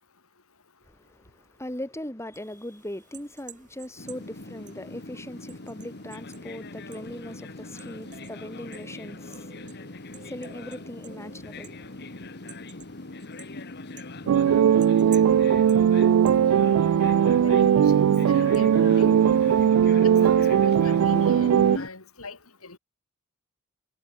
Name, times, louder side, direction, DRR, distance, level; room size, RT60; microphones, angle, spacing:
voice 1, 0.8-11.9, left 1 dB, 15° left, 3.8 m, -40 dB
sound 1, 2.3-19.7, right 7 dB, 35° right, 5.5 m, -52 dB
sound 2, 4.0-21.9, left 2 dB, 50° left, 1.7 m, -39 dB
sound 3, 14.3-21.8, right 8 dB, 75° right, 0.3 m, -19 dB
voice 2, 16.5-16.8 17.3-19.2 20.0-22.8, left 3 dB, 75° left, 4.2 m, -41 dB
head